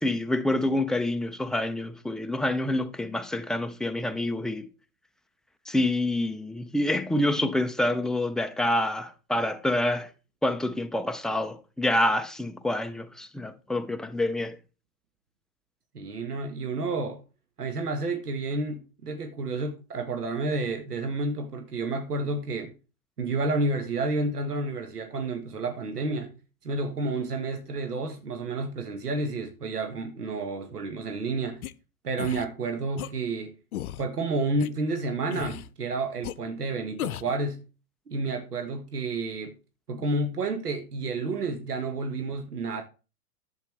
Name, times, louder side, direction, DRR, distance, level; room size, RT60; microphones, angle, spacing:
voice 1, 0.0-4.7 5.7-10.1 10.4-14.6, left 1 dB, ahead, 0.5 m, -27 dB
voice 2, 15.9-17.2 17.6-22.7 23.2-26.3 26.6-31.6 32.0-33.5 34.0-37.7 38.1-39.5 39.9-42.8, right 3 dB, 90° right, 1.5 m, -30 dB
sound 1, 31.6-31.7 32.2-32.5 33.0-33.1 33.7-34.0 34.6-34.7 35.3-35.7 36.2-36.3 37.0-37.4, left 13 dB, 70° left, 0.8 m, -35 dB
11.0 x 8.1 x 3.4 m
hypercardioid pair, 105°, 45 cm